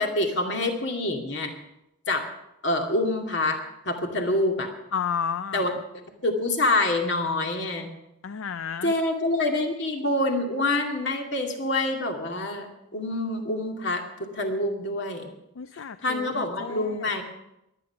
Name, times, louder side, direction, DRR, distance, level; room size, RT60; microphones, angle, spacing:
voice 1, 0.0-1.5 2.1-2.3 2.6-4.7 5.5-5.7 6.2-7.9 8.8-12.7 12.9-15.3 16.0-17.2, left 2 dB, 55° left, 3 dB, 2.3 m, -26 dB
voice 2, 4.9-5.7 8.2-8.9 15.6-17.1, left 7 dB, 75° left, 13 dB, 0.5 m, -32 dB
22.0 x 9.2 x 5.8 m, 0.86 s
head